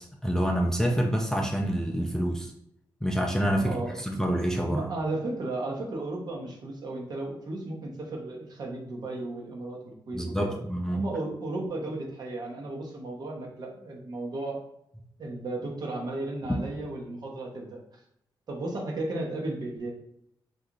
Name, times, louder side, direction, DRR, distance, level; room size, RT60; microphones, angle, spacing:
voice 1, 0.0-2.5 3.0-4.9 10.1-11.0, equal, 5° left, 1 dB, 0.3 m, -27 dB
voice 2, 3.6-4.0 4.7-10.6 10.9-14.6 15.2-18.0 18.5-19.9, right 2 dB, 55° right, 0 dB, 0.8 m, -34 dB
2.8 x 2.4 x 3.6 m, 0.74 s
wide cardioid pair, 150°, 8 cm